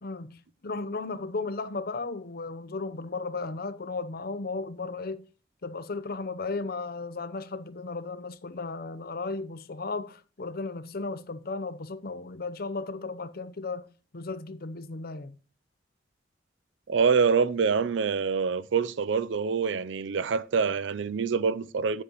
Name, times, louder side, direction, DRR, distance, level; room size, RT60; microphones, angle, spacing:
voice 1, 0.0-5.2 5.6-15.4, left 3 dB, 55° left, 0.7 m, -35 dB
voice 2, 16.9-22.0, right 5 dB, 75° right, 0.5 m, -25 dB
11.0 x 8.1 x 3.0 m
head